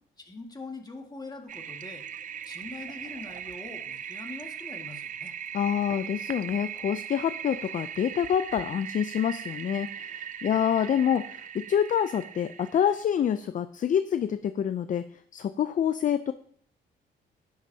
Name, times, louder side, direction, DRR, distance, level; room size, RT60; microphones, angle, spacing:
voice 1, 0.2-2.1 2.4-5.3 10.5-10.6, left 3 dB, 20° left, 2 dB, 1.8 m, -43 dB
Toilet flush, 1.5-13.0, right 8 dB, 40° right, 0.4 m, -39 dB
voice 2, 5.5-15.1 15.3-16.3, left 9 dB, 40° left, 11 dB, 0.4 m, -27 dB
11.5 x 9.5 x 2.8 m, 0.65 s
cardioid pair, 90°, 20 cm